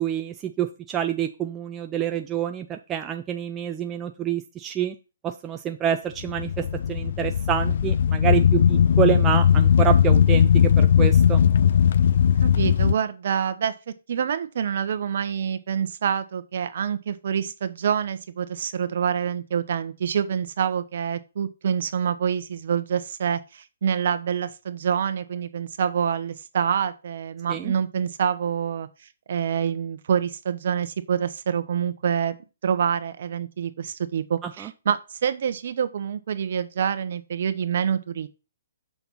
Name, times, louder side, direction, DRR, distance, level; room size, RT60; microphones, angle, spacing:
voice 1, 0.0-5.0 5.2-11.4 27.5-27.7 34.4-34.7, right 10 dB, 15° right, 0.4 m, -27 dB
sound 1, 6.2-12.9, left 8 dB, 55° left, 0.3 m, -18 dB
voice 2, 12.4-13.7 14.1-28.9 29.3-32.3 32.6-38.3, right 8 dB, 50° right, 1.0 m, -26 dB
6.8 x 6.1 x 5.6 m
hypercardioid pair, 170°, 0 cm